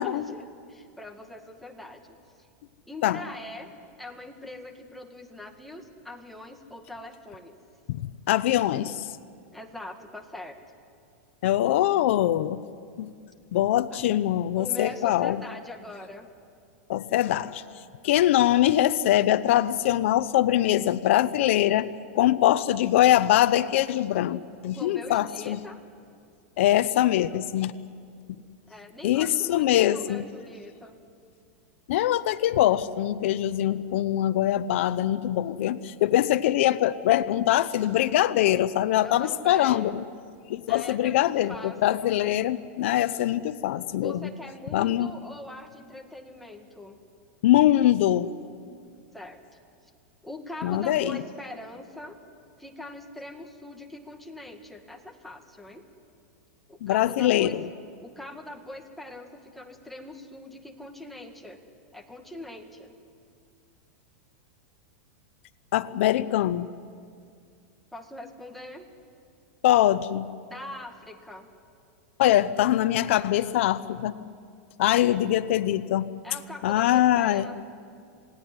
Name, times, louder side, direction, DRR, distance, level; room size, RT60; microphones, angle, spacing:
voice 1, 0.0-2.2 2.8-3.7 4.0-7.6 9.5-10.6 13.9-14.0 14.6-16.3 24.8-25.8 28.6-31.0 39.0-40.0 40.7-42.1 44.0-47.0 49.1-49.4 50.2-52.2 52.6-55.8 56.7-57.6 58.0-61.6 61.9-63.0 67.9-68.9 70.5-71.5 74.9-75.2 76.2-77.6, left 1 dB, ahead, 3 dB, 1.9 m, -42 dB
voice 2, 8.3-9.1 11.4-12.6 13.0-13.1 13.5-15.4 16.9-17.6 18.0-21.9 22.1-25.6 26.6-27.7 28.3-28.4 29.0-30.2 31.9-40.0 40.5-44.3 44.7-45.1 47.4-48.3 50.6-51.2 56.8-57.7 65.7-66.7 69.6-70.3 72.2-74.1 74.8-76.1 76.6-77.5, left 13 dB, 65° left, 11 dB, 0.7 m, -23 dB
27.5 x 18.0 x 9.8 m, 2.3 s
supercardioid pair, 150°, 7 cm